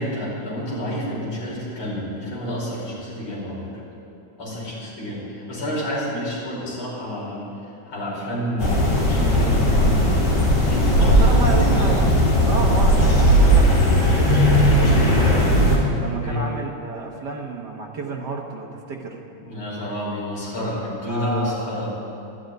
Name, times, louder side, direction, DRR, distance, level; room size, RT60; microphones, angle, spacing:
voice 1, 0.0-3.8 4.4-11.8 16.2-16.4 19.4-21.9, equal, 40° left, -6 dB, 5.5 m, -30 dB
sound 1, 8.6-15.8, equal, 65° left, 4.7 m, -17 dB
voice 2, 11.0-12.1 12.5-15.5 16.0-19.2 21.1-21.7, right 3 dB, 60° right, 0 dB, 1.1 m, -30 dB
12.0 x 12.0 x 9.2 m, 2.9 s
omnidirectional pair, 3.6 m